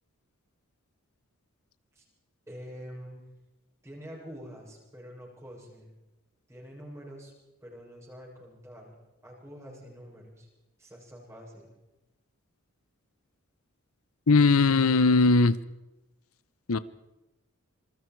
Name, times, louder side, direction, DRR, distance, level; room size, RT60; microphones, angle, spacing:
voice 1, 2.5-3.2 3.8-5.9 6.5-7.3 7.6-8.9 9.2-10.5 10.8-11.7, equal, 15° right, -4 dB, 7.5 m, -46 dB
voice 2, 14.3-15.6 16.7-16.8, left 3 dB, 85° left, 15 dB, 0.8 m, -20 dB
27.0 x 21.0 x 4.7 m, 1.0 s
head